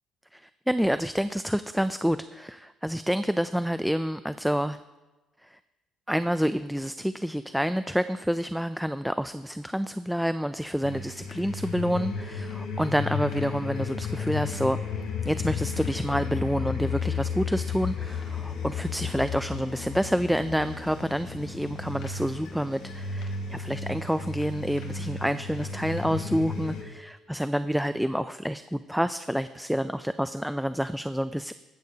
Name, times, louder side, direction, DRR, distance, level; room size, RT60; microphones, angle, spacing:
voice 1, 0.3-4.8 5.5-5.6 6.1-14.8 15.2-31.5, equal, ahead, 11 dB, 0.4 m, -28 dB
sound 1, 10.8-26.8, left 5 dB, 80° left, 3.1 m, -33 dB
15.0 x 14.5 x 2.8 m, 1.1 s
cardioid pair, 115°, 0 cm